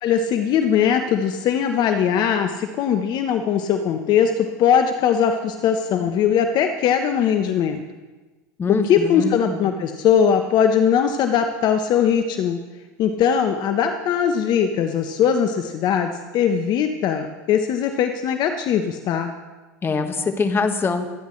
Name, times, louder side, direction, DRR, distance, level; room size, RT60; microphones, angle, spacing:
voice 1, 0.0-7.8 8.7-12.6 13.0-19.3, left 8 dB, 50° left, 6 dB, 1.0 m, -20 dB
voice 2, 8.6-9.7 19.8-21.0, left 4 dB, 25° left, 7 dB, 1.6 m, -23 dB
25.0 x 10.0 x 3.3 m, 1.2 s
hypercardioid pair, 95°, 9 cm